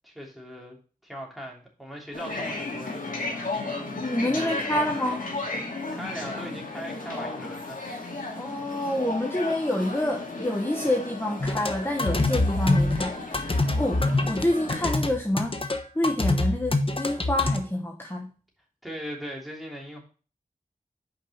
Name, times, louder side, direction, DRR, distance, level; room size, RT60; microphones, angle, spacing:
voice 1, 0.0-0.8 1.0-3.6 4.2-5.2 5.9-8.0 18.8-20.0, equal, ahead, -2 dB, 3.1 m, -39 dB
sound 1, 2.1-14.9, left 2 dB, 60° left, 2.3 m, -35 dB
voice 2, 4.0-5.2 8.4-13.5 13.8-15.6 15.9-18.3, left 1 dB, 15° left, 0 dB, 1.3 m, -27 dB
sound 2, 11.4-17.6, left 2 dB, 35° left, 1.0 m, -25 dB
5.8 x 5.2 x 5.5 m, 0.38 s
cardioid pair, 45°, 15 cm